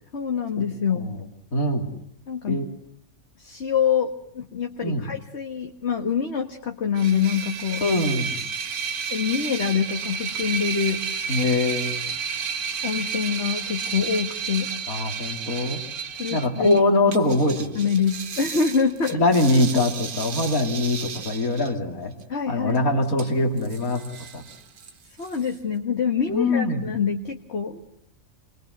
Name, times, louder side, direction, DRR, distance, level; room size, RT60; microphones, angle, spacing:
voice 1, 0.1-1.1 2.3-2.6 3.4-7.9 9.1-11.1 12.8-14.7 16.1-16.8 17.8-19.2 22.3-22.8 25.2-27.8, left 6 dB, 50° left, 3 dB, 1.8 m, -25 dB
voice 2, 1.5-1.9 2.5-2.6 4.8-5.1 7.8-8.4 11.3-12.0 14.9-15.8 16.3-17.8 19.1-22.1 22.5-24.0 24.3-24.4 26.3-26.8, left 2 dB, 70° left, 3 dB, 3.4 m, -23 dB
sound 1, 6.9-16.8 17.1-21.7 22.7-22.8 23.2-23.3 23.6-24.9 25.2-25.5, right 6 dB, 80° right, 1.8 m, -32 dB
27.5 x 22.5 x 8.0 m, 0.70 s
omnidirectional pair, 1.5 m